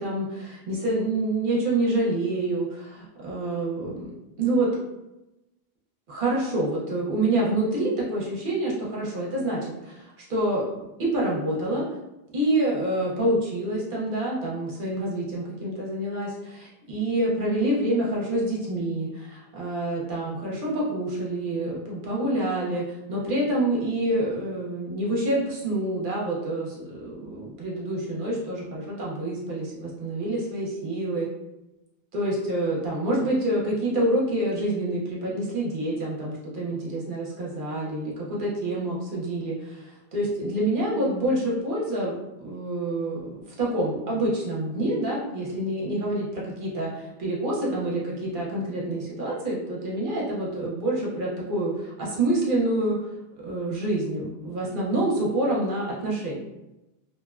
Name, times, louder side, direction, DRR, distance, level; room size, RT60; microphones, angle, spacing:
voice 1, 0.0-4.1 4.4-4.7 6.1-10.6 11.0-11.8 12.3-31.3 32.1-53.0 53.4-56.3, right 1 dB, 55° right, -4 dB, 0.8 m, -27 dB
2.5 x 2.1 x 2.3 m, 0.96 s
omnidirectional pair, 1.1 m